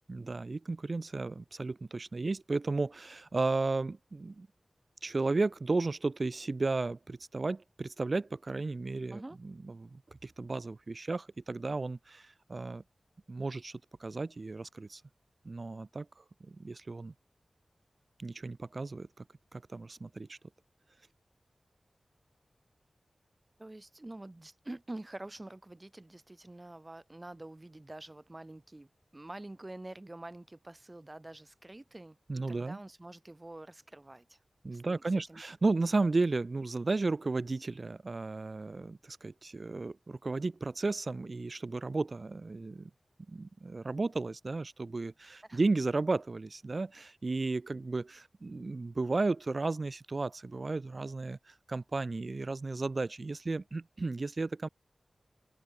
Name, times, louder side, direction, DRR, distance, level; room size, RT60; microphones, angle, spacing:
voice 1, 0.1-4.5 5.0-12.8 13.3-15.0 15.4-16.1 16.4-17.1 18.2-19.2 19.5-20.4 32.3-32.8 34.6-42.9 43.3-54.7, right 3 dB, 50° right, 1.4 m, -34 dB
voice 2, 23.6-28.9 29.1-34.4 34.7-35.4 45.5-45.6, right 2 dB, 30° right, 7.4 m, -47 dB
open air
cardioid pair, 50°, 0 cm